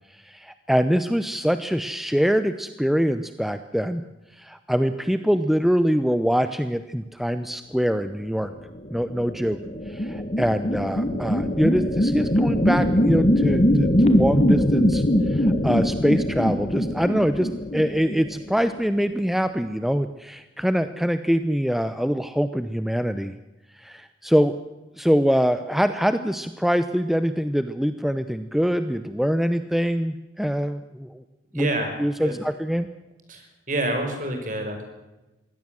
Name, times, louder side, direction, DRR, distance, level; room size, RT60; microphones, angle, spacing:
voice 1, 0.2-4.0 4.4-8.5 8.9-9.6 9.9-23.3 23.8-24.5 25.0-31.2 31.5-31.7 32.0-32.9, equal, ahead, 10 dB, 0.7 m, -24 dB
sound 1, 8.9-18.6, equal, 40° left, 1.8 m, -22 dB
voice 2, 31.5-31.9 32.2-32.4 33.3-34.8, right 1 dB, 45° right, 4 dB, 5.5 m, -28 dB
22.0 x 17.0 x 7.7 m, 1.0 s
head